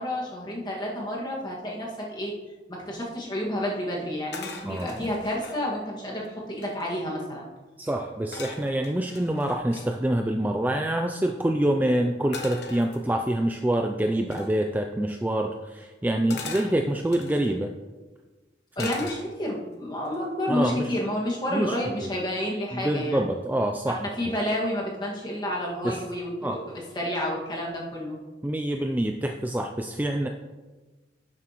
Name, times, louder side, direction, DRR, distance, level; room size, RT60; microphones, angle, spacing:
voice 1, 0.0-2.3 2.7-7.4 18.8-23.2 23.8-28.2, left 1 dB, 25° left, -3 dB, 1.9 m, -30 dB
sound 1, 4.3-5.6 6.2-6.3 6.5-7.1 8.3-9.9 12.3-13.4 14.3-14.6 16.3-17.5 18.8-19.6 20.1-20.4, left 3 dB, 60° left, 1.1 m, -40 dB
voice 2, 4.7-5.0 7.8-17.7 18.8-18.9 20.5-20.9 21.5-21.8 22.7-24.0 25.8-26.0 26.4-26.6 28.4-30.3, right 1 dB, 10° right, 4 dB, 0.3 m, -26 dB
10.5 x 7.5 x 3.0 m, 1.3 s
head